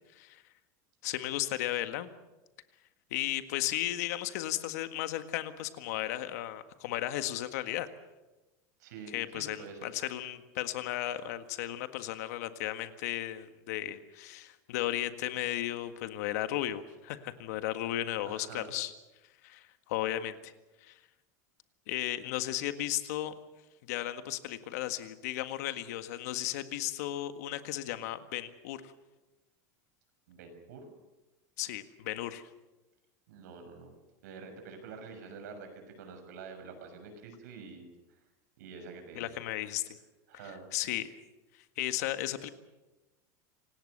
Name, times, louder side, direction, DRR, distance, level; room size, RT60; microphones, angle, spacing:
voice 1, 1.0-2.1 3.1-7.9 9.1-18.9 19.4-20.5 20.8-21.0 21.9-23.3 23.8-28.9 31.6-32.4 39.1-39.8 40.7-41.1 41.5-42.5, left 14 dB, 65° left, 10 dB, 1.7 m, -35 dB
voice 2, 8.8-9.9 18.2-18.7 30.3-30.8 33.3-34.0 34.2-38.2 38.6-39.3 40.3-40.7, right 5 dB, 85° right, 6 dB, 6.4 m, -47 dB
26.5 x 18.5 x 6.7 m, 1.1 s
supercardioid pair, 170°, 9 cm